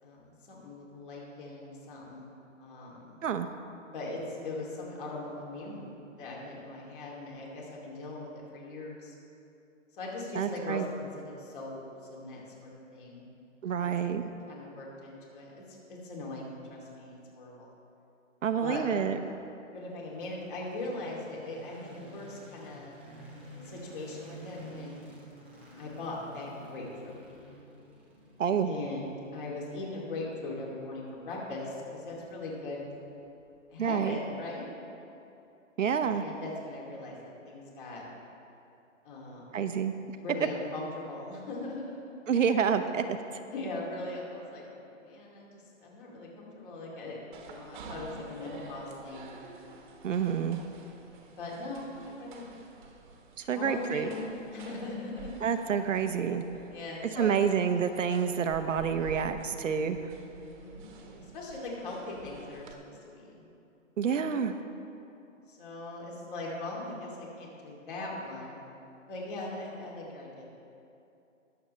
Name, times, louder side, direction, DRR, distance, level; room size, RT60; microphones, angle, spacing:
voice 1, 0.0-3.2 3.8-9.1 9.9-13.3 13.8-13.9 14.5-17.7 18.6-18.8 19.7-23.0 23.6-25.1 25.8-27.1 28.6-32.8 33.7-34.7 36.1-38.0 39.0-39.7 40.2-42.2 42.5-42.8 43.5-49.3 51.3-52.5 53.5-54.3 54.5-55.3 56.7-57.4 60.3-60.9 61.3-63.4 65.5-68.6 69.1-70.4, left 2 dB, 40° left, -3 dB, 2.8 m, -40 dB
voice 2, 10.3-10.9 13.6-14.2 18.4-19.2 28.4-28.7 33.8-34.2 35.8-36.2 39.5-39.9 42.3-43.2 50.0-50.6 53.4-54.1 55.4-56.4 57.1-60.0 64.0-64.6, right 7 dB, 70° right, 8 dB, 0.8 m, -28 dB
sound 1, 19.9-34.0, right 1 dB, 10° right, 0.4 m, -52 dB
stairwell ambient noise, 47.3-62.7, right 4 dB, 35° right, 1.2 m, -49 dB
21.0 x 7.1 x 3.3 m, 2.7 s
hypercardioid pair, 150°, 39 cm